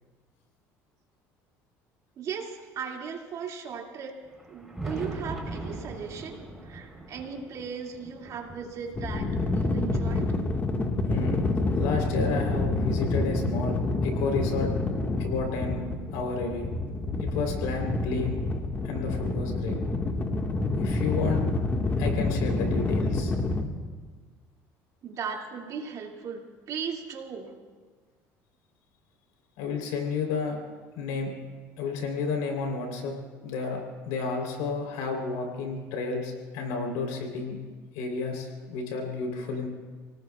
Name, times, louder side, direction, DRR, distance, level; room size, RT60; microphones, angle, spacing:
voice 1, 2.2-4.2 4.5-10.3 25.0-27.5, right 6 dB, 55° right, 1 dB, 2.5 m, -37 dB
Thunder, 4.2-12.8 13.5-15.2 16.3-16.4 17.0-17.1 18.9-19.0 20.4-20.5 22.1-22.2, right 2 dB, 5° right, 4.1 m, -42 dB
sound 1, 8.9-23.6, left 2 dB, 25° left, 1.7 m, -28 dB
voice 2, 11.0-11.4 11.8-13.8 14.0-14.7 15.2-15.9 16.1-16.7 17.2-18.4 18.8-19.8 20.8-21.4 22.0-23.3 29.6-30.6 31.0-31.3 31.8-37.6 37.9-39.7, left 4 dB, 85° left, 3 dB, 3.7 m, -31 dB
30.0 x 18.5 x 2.4 m, 1.5 s
supercardioid pair, 95°, 7 cm